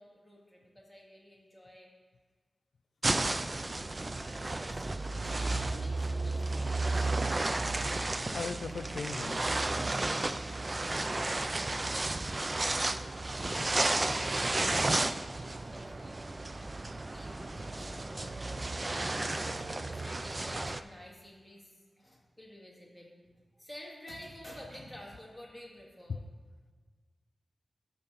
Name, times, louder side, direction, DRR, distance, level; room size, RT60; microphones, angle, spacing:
voice 1, 0.0-1.9 3.0-4.8 5.2-7.1 12.6-16.9 17.1-18.7 19.6-23.1 23.6-26.2, left 1 dB, 5° right, -3 dB, 2.0 m, -51 dB
sound 1, 3.0-20.8, right 2 dB, 30° right, 0.3 m, -32 dB
voice 2, 8.3-9.6 26.1-26.2, left 5 dB, 85° left, 11 dB, 0.3 m, -38 dB
13.0 x 5.7 x 4.0 m, 1.5 s
wide cardioid pair, 125°, 0 cm